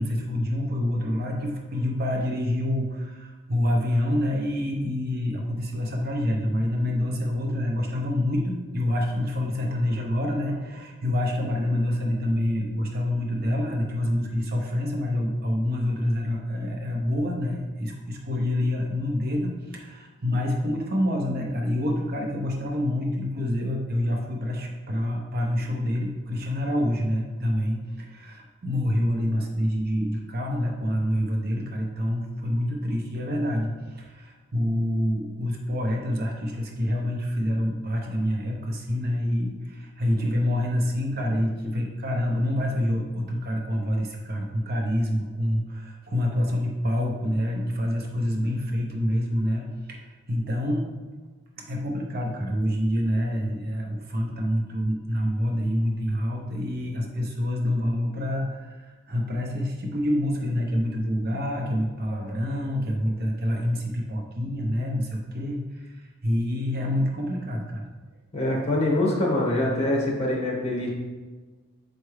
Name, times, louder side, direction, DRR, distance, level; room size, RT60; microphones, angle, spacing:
voice 1, 0.0-49.6 49.9-50.9 51.6-67.9, left 1 dB, 50° right, 1 dB, 0.8 m, -27 dB
voice 2, 68.3-70.9, left 1 dB, 30° left, -3 dB, 1.6 m, -24 dB
6.6 x 4.7 x 3.2 m, 1.3 s
head